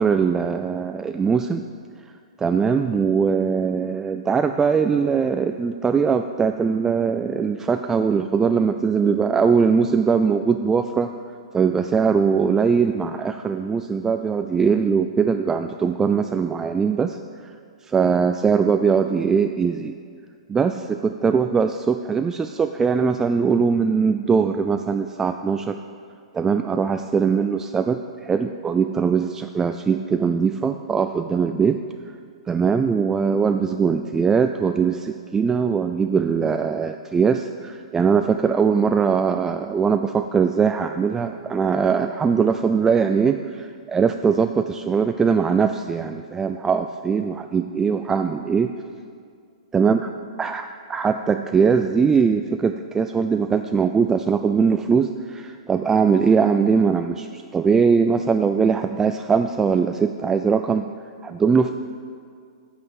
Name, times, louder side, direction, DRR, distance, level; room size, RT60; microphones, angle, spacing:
voice 1, 0.0-1.6 2.4-11.1 11.5-17.2 17.4-17.5 17.9-19.9 20.5-25.8 26.3-31.8 32.5-48.7 49.7-50.0 50.4-50.6 50.9-60.9 61.2-61.7, right 6 dB, 15° right, 7 dB, 0.3 m, -21 dB
9.0 x 5.7 x 7.8 m, 2.2 s
hypercardioid pair, 115°, 3 cm